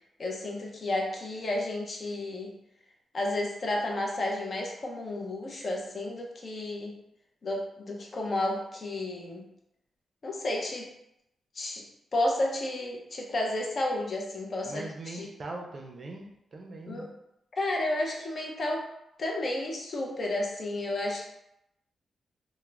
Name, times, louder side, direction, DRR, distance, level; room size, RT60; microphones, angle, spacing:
voice 1, 0.2-2.5 3.1-6.9 7.4-9.4 10.2-10.9 11.5-11.9 12.1-15.3 16.9-17.1 17.6-18.9 19.2-21.3, left 1 dB, 45° left, 0 dB, 0.5 m, -32 dB
voice 2, 14.6-17.1, right 2 dB, 40° right, 1 dB, 0.4 m, -41 dB
2.3 x 2.0 x 3.1 m, 0.82 s
cardioid pair, 110°, 0 cm